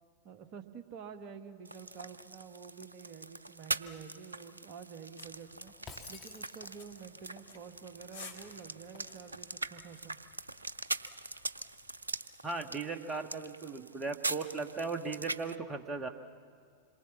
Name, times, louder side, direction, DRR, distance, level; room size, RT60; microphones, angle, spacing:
voice 1, 0.2-5.7 6.1-10.2, right 6 dB, 40° right, 8 dB, 1.4 m, -49 dB
sound 1, 1.6-15.5, right 2 dB, 80° right, 0.5 m, -42 dB
sound 2, 5.2-12.1, left 5 dB, 65° left, 2.5 m, -56 dB
Shatter, 5.9-7.1, left 4 dB, 15° left, 2.4 m, -50 dB
voice 2, 12.4-16.1, right 4 dB, 20° right, 5 dB, 1.6 m, -37 dB
26.5 x 22.5 x 7.2 m, 2.2 s
figure-of-eight pair, 90°, 0 cm